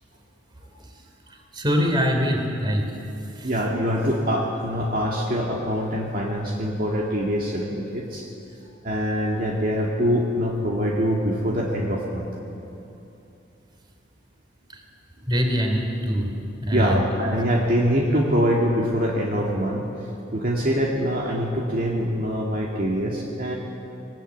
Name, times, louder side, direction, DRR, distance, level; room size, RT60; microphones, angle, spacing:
voice 1, 1.5-2.8 3.3-3.5 14.7-14.8 15.3-16.3 16.6-17.0, equal, 25° right, 3 dB, 3.2 m, -23 dB
voice 2, 3.4-8.3 8.8-12.3 16.7-19.9 20.3-23.5, equal, 50° right, -2 dB, 2.1 m, -24 dB
21.0 x 19.5 x 8.3 m, 2.8 s
head